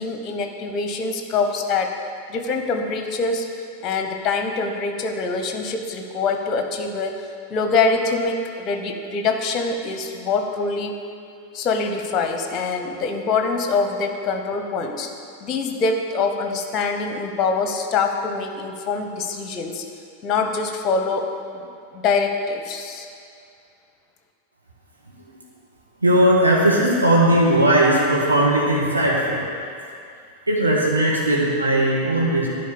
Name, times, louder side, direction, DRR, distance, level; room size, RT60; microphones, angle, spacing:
voice 1, 0.0-1.9 2.3-3.5 3.8-7.1 7.5-11.0 11.5-15.1 15.4-19.8 20.2-21.2 21.9-23.1, left 4 dB, 30° left, 5 dB, 0.9 m, -24 dB
voice 2, 26.0-29.4 30.5-32.5, right 1 dB, 80° right, -5 dB, 1.6 m, -18 dB
10.5 x 4.1 x 7.0 m, 2.4 s
figure-of-eight pair, 90°, 0 cm